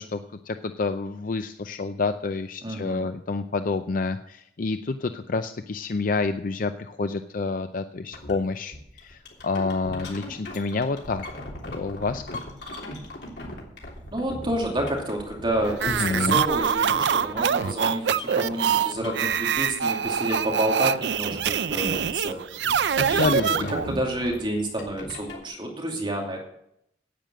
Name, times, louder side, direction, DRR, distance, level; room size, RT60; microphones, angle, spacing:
voice 1, 0.0-11.2 11.7-12.2 15.8-16.4 22.9-23.7, left 4 dB, 50° left, 9 dB, 0.5 m, -28 dB
voice 2, 2.6-3.1 14.1-22.4 23.1-23.6 23.9-26.4, right 1 dB, 30° right, 0 dB, 2.6 m, -29 dB
sound 1, 8.1-8.3 8.7-19.7 20.0-20.8 21.1-25.4, left 1 dB, 70° left, 3.4 m, -39 dB
sound 2, 15.7-24.0, right 7 dB, 70° right, 0.4 m, -24 dB
10.0 x 9.2 x 7.5 m, 0.77 s
head